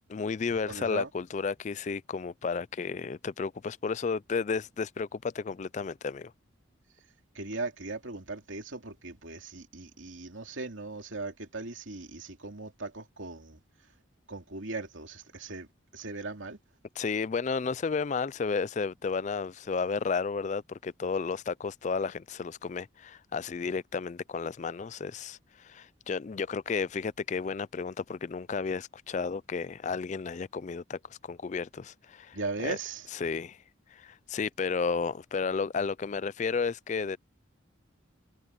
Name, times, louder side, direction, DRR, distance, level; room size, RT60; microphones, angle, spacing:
voice 1, 0.1-6.3 17.0-32.8 33.1-33.6 33.9-37.2, left 5 dB, 35° left, 0.3 m, -32 dB
voice 2, 0.7-1.1 7.3-13.6 14.3-15.7 15.9-16.6 32.3-33.1, right 3 dB, 75° right, 2.6 m, -38 dB
head